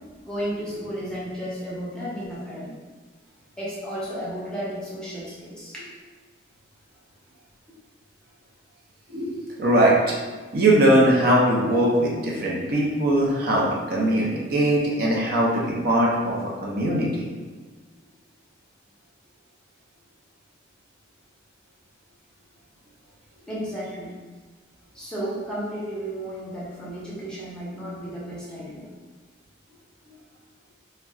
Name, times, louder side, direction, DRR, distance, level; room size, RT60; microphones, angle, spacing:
voice 1, 0.3-2.8 3.6-5.9 23.5-24.1 24.9-28.9, equal, 5° left, -8 dB, 0.6 m, -33 dB
voice 2, 9.1-10.1 10.5-17.3, right 1 dB, 50° right, -4 dB, 0.5 m, -21 dB
2.3 x 2.2 x 3.7 m, 1.4 s
head